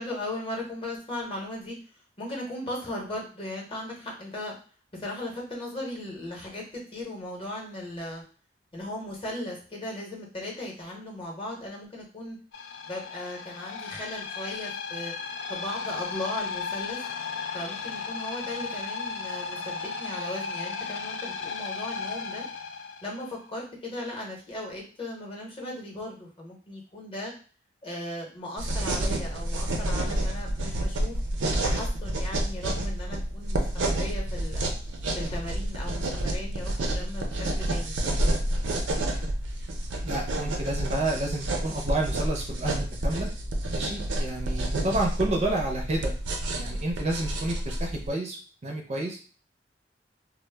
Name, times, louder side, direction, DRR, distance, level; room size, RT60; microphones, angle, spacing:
voice 1, 0.0-1.8 2.2-4.5 4.9-8.2 8.7-12.4 12.8-15.1 15.5-17.0 17.5-22.5 23.0-27.3 27.8-31.2 31.6-34.7 35.1-37.3 37.6-38.0, left 1 dB, 30° left, -1 dB, 0.7 m, -37 dB
sound 1, 12.5-23.3, left 5 dB, 80° left, 0.3 m, -35 dB
sound 2, 28.6-48.1, right 1 dB, 85° right, 0.5 m, -29 dB
voice 2, 40.0-43.3 43.7-46.1 46.5-48.4 48.6-49.2, right 2 dB, 35° right, 1 dB, 0.4 m, -30 dB
2.0 x 2.0 x 3.2 m, 0.39 s
head